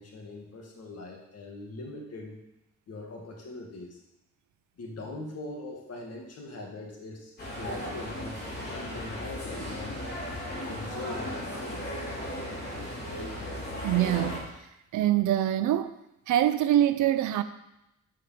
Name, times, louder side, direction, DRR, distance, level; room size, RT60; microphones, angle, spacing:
voice 1, 0.0-2.4 2.9-4.0 4.8-8.4 8.7-10.0 10.6-11.9, left 2 dB, 55° left, 0 dB, 2.0 m, -41 dB
sound 1, 7.4-14.4, equal, 35° left, 3.4 m, -36 dB
voice 2, 13.8-14.5 14.9-15.9 16.3-17.4, right 12 dB, 75° right, 12 dB, 0.6 m, -24 dB
6.9 x 5.0 x 5.8 m, 0.87 s
cardioid pair, 90°, 30 cm